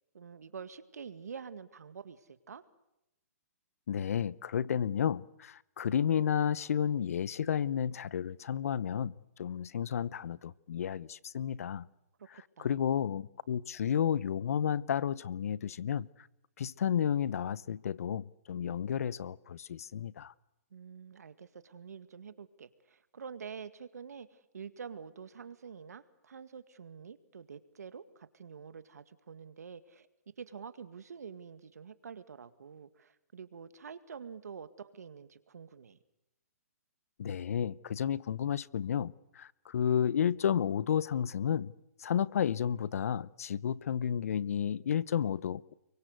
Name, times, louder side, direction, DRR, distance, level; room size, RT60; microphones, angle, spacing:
voice 1, 0.1-2.6 12.2-12.7 20.7-30.1 30.4-36.0, right 6 dB, 80° right, 2.0 m, -47 dB
voice 2, 3.9-11.9 12.6-16.1 16.6-20.3 37.2-41.7 42.0-45.7, left 8 dB, 65° left, 0.9 m, -32 dB
30.0 x 23.5 x 8.2 m
hypercardioid pair, 150°, 9 cm